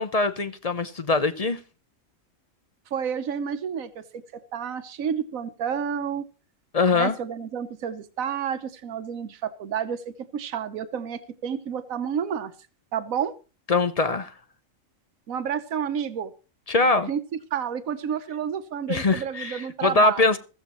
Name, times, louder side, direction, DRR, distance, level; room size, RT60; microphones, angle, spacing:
voice 1, 0.0-1.6 6.7-7.2 13.7-14.3 16.7-17.1 18.9-20.4, left 3 dB, 35° left, 0.7 m, -22 dB
voice 2, 2.9-6.2 6.9-10.0 10.3-12.5 12.9-13.3 15.3-16.3 17.1-17.2 17.5-20.2, right 8 dB, 80° right, 1.4 m, -30 dB
15.5 x 14.0 x 3.1 m
omnidirectional pair, 1.4 m